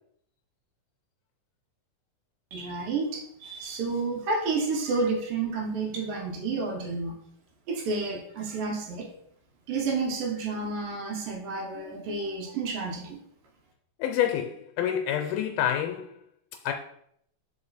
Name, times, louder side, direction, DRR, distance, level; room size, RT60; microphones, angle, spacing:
voice 1, 2.5-7.1 7.7-9.1 9.7-13.2, right 3 dB, 90° right, 2.9 m, -30 dB
voice 2, 14.0-16.1 16.6-16.7, left 10 dB, 85° left, 2.1 m, -27 dB
5.5 x 4.9 x 4.1 m
omnidirectional pair, 3.8 m